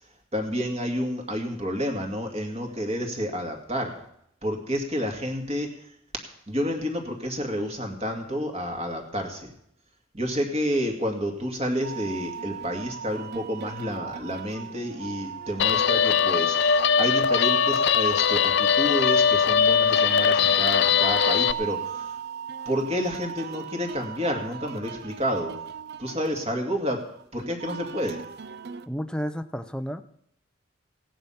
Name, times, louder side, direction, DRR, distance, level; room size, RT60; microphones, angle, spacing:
voice 1, 0.3-4.0 4.4-5.7 6.5-9.5 10.1-22.1 22.7-25.5 26.0-27.0 27.3-28.2, equal, 30° right, 3 dB, 2.3 m, -29 dB
sound 1, 11.8-28.9, right 7 dB, 50° right, 0.5 m, -38 dB
Guitar, 15.6-21.5, left 7 dB, 55° left, 0.5 m, -21 dB
voice 2, 28.9-30.0, equal, 5° left, 9 dB, 0.6 m, -31 dB
16.5 x 10.0 x 5.8 m, 0.72 s
head